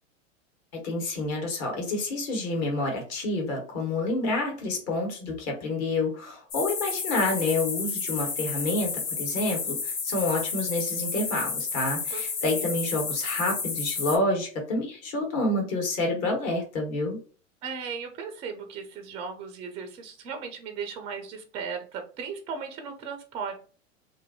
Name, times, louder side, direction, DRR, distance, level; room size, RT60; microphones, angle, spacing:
voice 1, 0.7-17.2, left 2 dB, 40° left, 1 dB, 1.3 m, -28 dB
sound 1, 6.5-14.2, left 5 dB, 75° left, 0.9 m, -31 dB
voice 2, 12.1-12.7 17.6-23.5, right 6 dB, 15° right, 6 dB, 0.3 m, -37 dB
2.6 x 2.5 x 2.6 m, 0.40 s
hypercardioid pair, 100°, 39 cm